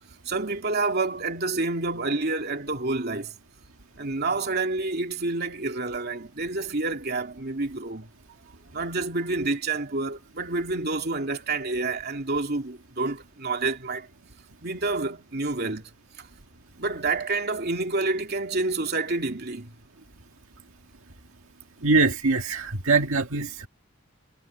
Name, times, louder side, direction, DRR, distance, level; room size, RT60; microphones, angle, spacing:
voice 1, 0.3-3.3 4.0-8.1 8.7-14.1 14.6-15.9 16.8-19.7, right 3 dB, 45° right, 2.8 m, -28 dB
voice 2, 21.8-23.7, right 3 dB, 75° right, 1.8 m, -23 dB
head